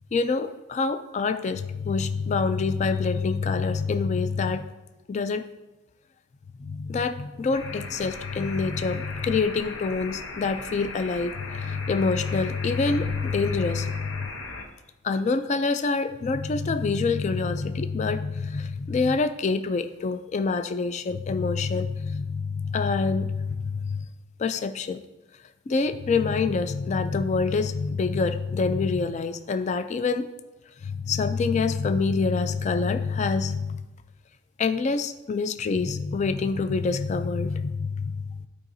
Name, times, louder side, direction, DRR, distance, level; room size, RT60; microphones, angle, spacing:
voice 1, 0.1-4.7 5.1-5.5 6.6-14.3 15.0-24.1 24.4-25.0 25.7-30.3 30.8-33.9 34.6-38.5, left 4 dB, 35° left, 10 dB, 0.3 m, -26 dB
sound 1, 7.5-14.6, left 3 dB, 70° left, 0.8 m, -38 dB
11.5 x 4.8 x 2.6 m, 1.0 s
head